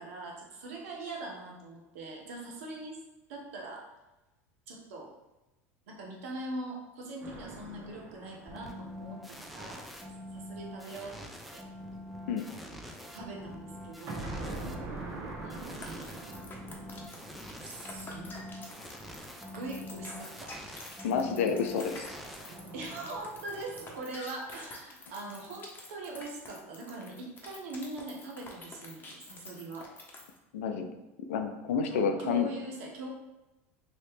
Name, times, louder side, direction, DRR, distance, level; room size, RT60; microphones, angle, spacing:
voice 1, 0.0-3.0 3.3-3.9 4.7-5.1 5.9-11.7 13.1-14.4 15.4-16.2 17.6-18.3 19.5-20.5 22.7-29.9 31.8-33.1, right 2 dB, 80° right, 0 dB, 0.9 m, -42 dB
sound 1, 7.2-10.0 14.1-20.3 21.6-24.0, right 2 dB, 40° right, 0.9 m, -45 dB
sound 2, 8.5-23.1, equal, ahead, 0.4 m, -45 dB
sound 3, 15.7-30.4, left 3 dB, 25° left, 0.9 m, -47 dB
voice 2, 21.0-22.1 30.5-30.9 31.3-32.5, left 6 dB, 85° left, 6 dB, 0.4 m, -29 dB
3.1 x 2.9 x 3.1 m, 1.0 s
hypercardioid pair, 90°, 7 cm